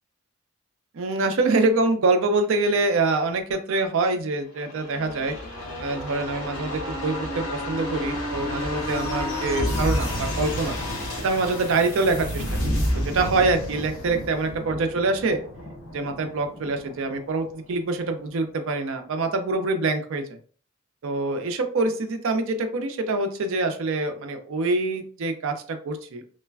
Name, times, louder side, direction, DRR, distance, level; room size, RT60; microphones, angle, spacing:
voice 1, 0.9-5.3 5.8-10.8 11.2-15.4 15.9-20.3 21.0-26.3, right 3 dB, 60° right, 6 dB, 0.4 m, -25 dB
sound 1, 4.6-18.1 18.4-18.5, left 1 dB, 60° left, 1.0 m, -30 dB
3.1 x 2.1 x 2.3 m, 0.44 s
head